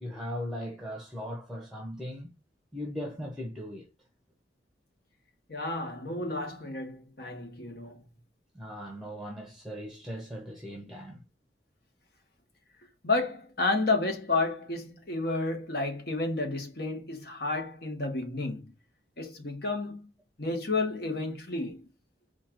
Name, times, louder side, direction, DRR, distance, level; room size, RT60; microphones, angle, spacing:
voice 1, 0.0-2.3 2.7-3.9 8.5-11.2, equal, ahead, 0.8 m, -38 dB
voice 2, 5.5-8.0 13.0-18.7 19.2-20.1 20.4-21.9, left 3 dB, 60° left, 1.3 m, -31 dB
4.4 x 2.5 x 4.4 m
head